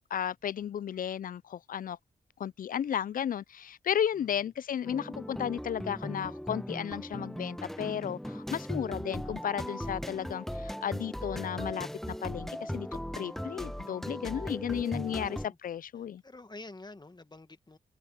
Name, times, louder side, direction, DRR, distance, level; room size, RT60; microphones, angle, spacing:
voice 1, 0.1-2.0 2.4-12.9 13.1-16.2, left 9 dB, 60° left, 0.4 m, -34 dB
voice 2, 4.1-4.5 15.2-15.6 16.0-17.8, left 2 dB, 25° left, 1.7 m, -49 dB
atrium loop, 4.8-15.5, equal, ahead, 1.0 m, -38 dB
supercardioid pair, 45°, 16 cm